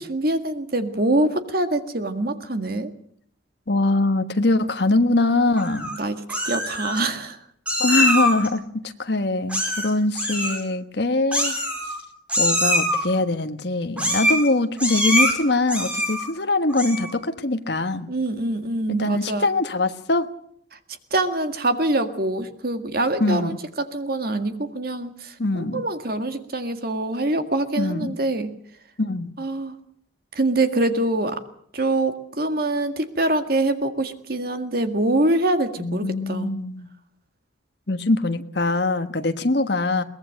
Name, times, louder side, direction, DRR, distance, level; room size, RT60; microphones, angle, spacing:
voice 1, 0.0-2.9 6.0-7.4 18.1-19.5 20.7-20.8 21.1-28.5 29.4-29.8 30.3-31.4 31.7-36.5, right 2 dB, 50° right, 8 dB, 1.9 m, -24 dB
voice 2, 3.7-5.9 7.8-11.6 11.8-11.9 12.4-18.1 19.0-20.3 23.2-23.6 25.4-25.8 27.8-28.1 29.0-29.3 35.8-36.9 37.9-40.0, left 2 dB, 55° left, 8 dB, 1.4 m, -23 dB
Meow, 5.6-6.0 6.3-7.0 7.7-8.5 9.5-9.9 10.1-10.6 11.3-12.0 12.3-13.0 14.0-14.5 14.8-15.3 15.7-16.3 16.7-17.1, equal, 5° right, 5.0 m, -23 dB
22.5 x 19.5 x 6.5 m, 0.67 s
head